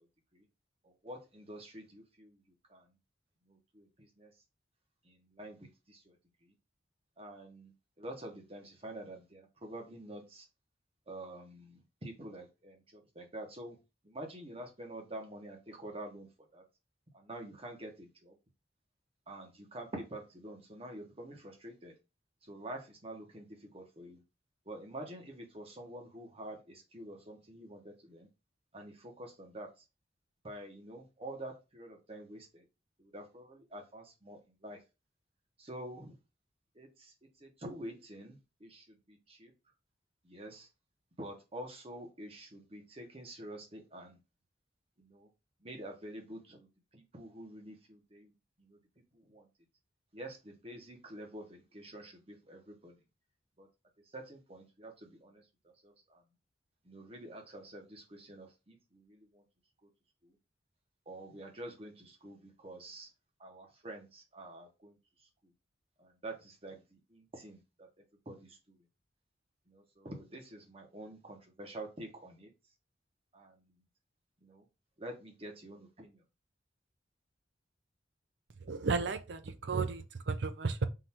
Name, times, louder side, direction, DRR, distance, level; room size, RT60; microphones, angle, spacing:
voice 1, 0.8-2.4 2.7-2.9 3.5-4.3 5.0-6.2 6.4-6.5 7.2-10.5 11.1-13.8 14.0-16.6 17.1-18.4 19.3-22.0 22.4-24.2 24.7-28.3 28.7-29.7 30.4-32.6 33.0-34.8 35.6-36.2 36.7-39.5 40.2-40.7 41.2-44.2 45.0-45.3 45.6-48.3 48.6-48.8 49.1-49.5 50.1-53.0 53.6-53.7 54.1-56.2 56.8-59.4 60.2-60.3 61.1-63.1 63.4-65.0 66.0-67.9 68.3-68.8 69.7-72.5 73.3-73.8 74.4-74.6 75.0-76.2, right 1 dB, 30° right, 1.1 m, -47 dB
voice 2, 78.7-80.9, right 4 dB, 70° right, 0.6 m, -33 dB
3.8 x 2.6 x 4.3 m
head